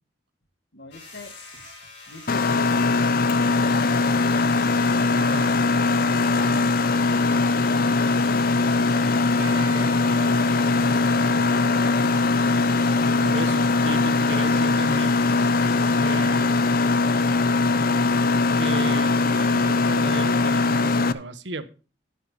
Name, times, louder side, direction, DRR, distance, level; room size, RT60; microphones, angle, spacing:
voice 1, 0.7-1.6 2.1-2.9 3.6-5.6 7.7-9.9, left 2 dB, 90° left, 1.9 m, -41 dB
sound 1, 0.9-16.0, left 3 dB, 70° left, 6.2 m, -45 dB
Mechanisms, 2.3-21.1, left 3 dB, 55° left, 0.6 m, -21 dB
voice 2, 5.2-5.5 6.2-6.7 13.2-15.2 15.9-16.5 18.5-21.6, right 3 dB, 85° right, 1.1 m, -34 dB
sound 2, 9.4-18.6, right 2 dB, 20° right, 4.5 m, -46 dB
11.5 x 9.9 x 3.5 m
head